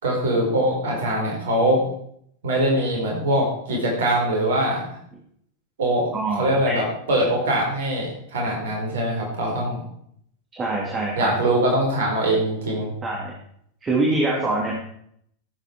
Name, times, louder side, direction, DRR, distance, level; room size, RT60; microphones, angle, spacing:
voice 1, 0.0-1.8 2.4-4.8 5.8-6.1 6.4-9.8 11.2-12.9, right 1 dB, 60° right, -1 dB, 4.7 m, -22 dB
voice 2, 6.1-6.8 10.5-11.3 13.0-13.3 13.8-14.7, right 2 dB, 20° right, -3 dB, 2.9 m, -24 dB
16.0 x 8.8 x 4.7 m, 0.69 s
figure-of-eight pair, 90°, 0 cm